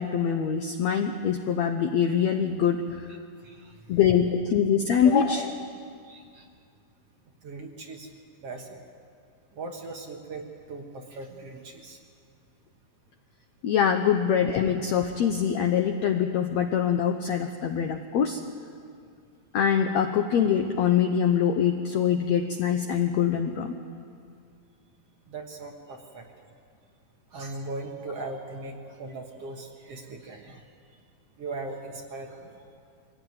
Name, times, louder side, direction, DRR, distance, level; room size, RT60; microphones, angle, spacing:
voice 1, 0.0-3.1 3.9-5.7 13.6-18.4 19.5-23.8, left 8 dB, 90° left, 6 dB, 1.5 m, -24 dB
voice 2, 3.4-3.8 6.0-6.5 7.4-8.1 8.4-8.8 9.6-12.0 25.3-26.3 27.3-30.6 31.4-32.6, right 3 dB, 55° right, 1 dB, 1.9 m, -39 dB
24.0 x 17.5 x 9.4 m, 2.3 s
omnidirectional pair, 4.3 m